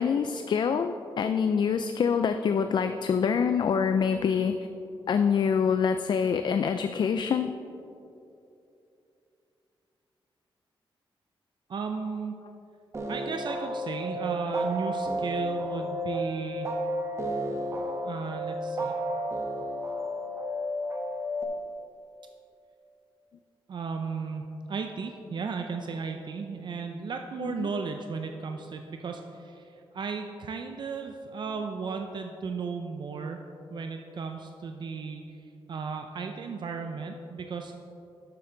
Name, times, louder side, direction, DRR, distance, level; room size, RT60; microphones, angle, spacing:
voice 1, 0.0-4.5 5.1-7.5 27.4-27.7, left 6 dB, 55° left, 8 dB, 0.4 m, -25 dB
voice 2, 11.7-12.3 13.1-16.7 18.0-19.0 23.7-33.4 33.7-37.7, right 5 dB, 55° right, 5 dB, 0.5 m, -35 dB
sound 1, 12.9-21.4, equal, 30° right, 1.0 m, -32 dB
11.5 x 7.8 x 3.8 m, 2.7 s
wide cardioid pair, 130°, 9 cm